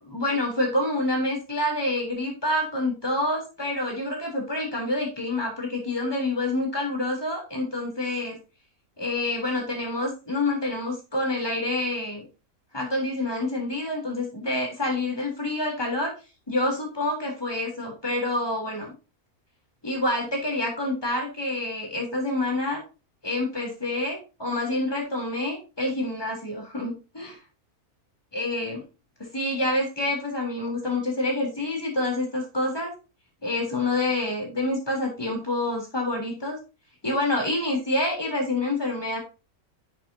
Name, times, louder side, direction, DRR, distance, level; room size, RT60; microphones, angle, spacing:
voice 1, 0.0-8.4 9.0-12.2 12.7-16.1 16.5-18.9 19.8-22.8 23.2-27.4 28.3-28.8 29.2-32.9 33.4-36.6 37.0-39.2, left 2 dB, 15° left, 0 dB, 3.6 m, -27 dB
11.0 x 7.5 x 2.8 m, 0.30 s
omnidirectional pair, 1.6 m